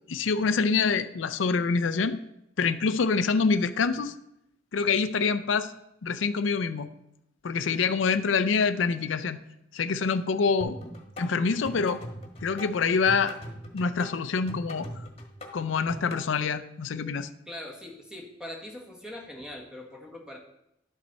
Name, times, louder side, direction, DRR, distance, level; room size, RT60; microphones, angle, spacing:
voice 1, 0.1-2.2 2.6-4.2 4.7-5.7 6.0-6.9 7.4-9.4 9.7-10.8 11.2-12.0 12.4-13.4 13.7-15.1 15.5-17.3, left 5 dB, 90° left, 11 dB, 0.5 m, -26 dB
sound 1, 10.6-16.2, equal, 35° left, 1.5 m, -41 dB
voice 2, 17.5-20.4, left 1 dB, 5° right, 0 dB, 1.5 m, -41 dB
11.5 x 6.1 x 4.1 m, 0.82 s
head